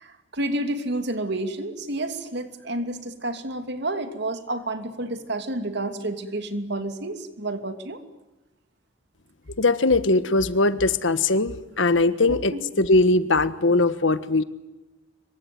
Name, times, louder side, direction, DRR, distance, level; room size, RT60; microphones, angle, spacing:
voice 1, 0.0-8.0 12.3-12.6, right 1 dB, 60° right, 8 dB, 2.8 m, -30 dB
voice 2, 9.6-14.4, left 2 dB, 70° left, 13 dB, 1.4 m, -20 dB
26.0 x 23.5 x 9.4 m, 1.0 s
head